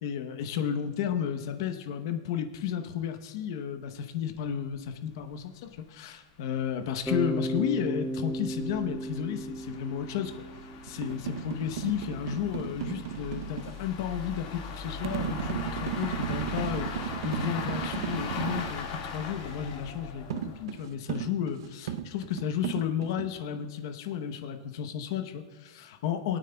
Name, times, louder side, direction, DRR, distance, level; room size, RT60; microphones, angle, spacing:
voice 1, 0.0-10.3 10.8-26.4, left 9 dB, 50° left, 7 dB, 0.9 m, -33 dB
sound 1, 4.7-4.8 5.3-5.4 5.7-5.8 6.4-20.8, left 4 dB, 35° left, 1.9 m, -40 dB
Bass guitar, 7.1-11.1, right 1 dB, ahead, 0.3 m, -34 dB
sound 2, 10.9-13.8 15.0-18.8 20.3-23.3, right 9 dB, 65° right, 0.6 m, -35 dB
22.5 x 9.0 x 2.3 m, 1.5 s
supercardioid pair, 170°, 2 cm